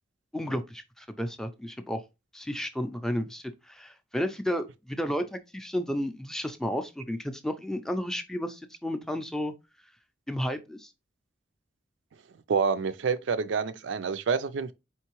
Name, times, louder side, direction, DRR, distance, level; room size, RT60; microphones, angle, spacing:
voice 1, 0.3-2.0 2.3-9.5 10.3-10.9, equal, 5° left, 0.4 m, -32 dB
voice 2, 12.5-14.7, right 5 dB, 75° right, 0.4 m, -27 dB
4.5 x 3.2 x 3.0 m
head